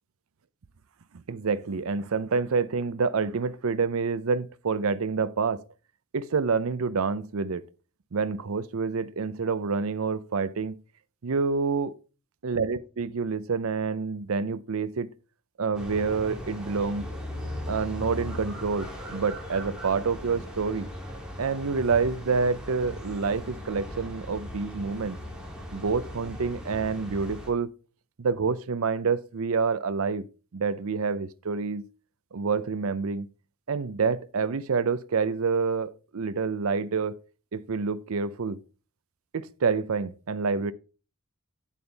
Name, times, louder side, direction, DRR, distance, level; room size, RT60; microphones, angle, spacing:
voice 1, 1.3-5.6 6.1-7.6 8.1-10.8 11.2-12.0 12.4-15.1 15.6-17.0 17.7-20.9 21.4-25.2 25.7-27.7 28.2-30.2 30.5-31.8 32.3-33.3 33.7-37.2 37.5-38.6 39.3-40.7, right 5 dB, 65° right, 0.6 m, -27 dB
sound 1, 15.7-27.5, equal, 5° right, 2.8 m, -38 dB
8.7 x 8.3 x 3.4 m
head